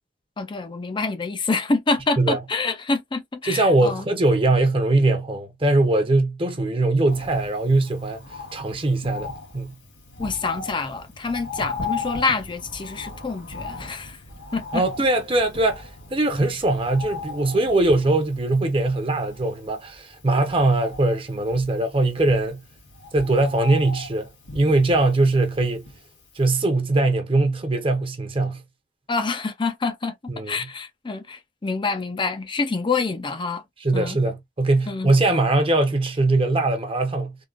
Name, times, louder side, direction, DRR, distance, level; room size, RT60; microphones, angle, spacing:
voice 1, 0.4-4.0 10.2-14.2 14.5-14.8 29.1-33.6 33.9-34.2 34.9-35.1, left 4 dB, 25° left, 0.4 m, -27 dB
voice 2, 3.4-8.2 8.5-9.7 14.7-22.6 23.1-25.8 26.4-28.6 30.3-30.6 33.8-37.3, right 2 dB, 30° right, 0.8 m, -21 dB
Bird, 7.1-26.2 26.5-26.6, left 4 dB, 85° left, 1.5 m, -38 dB
3.6 x 2.4 x 2.4 m
head